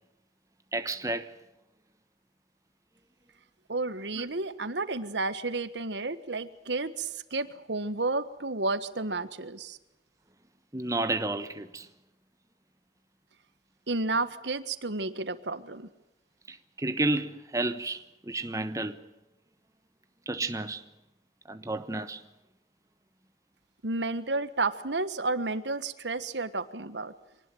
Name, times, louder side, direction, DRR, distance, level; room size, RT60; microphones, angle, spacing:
voice 1, 0.7-1.3 4.2-4.3 10.7-11.9 16.5-19.0 20.3-20.8 21.5-22.2, right 2 dB, 20° right, 1.1 m, -31 dB
voice 2, 3.7-9.8 13.9-15.9 23.8-27.1, right 3 dB, 80° right, 1.5 m, -31 dB
25.0 x 19.5 x 7.9 m
head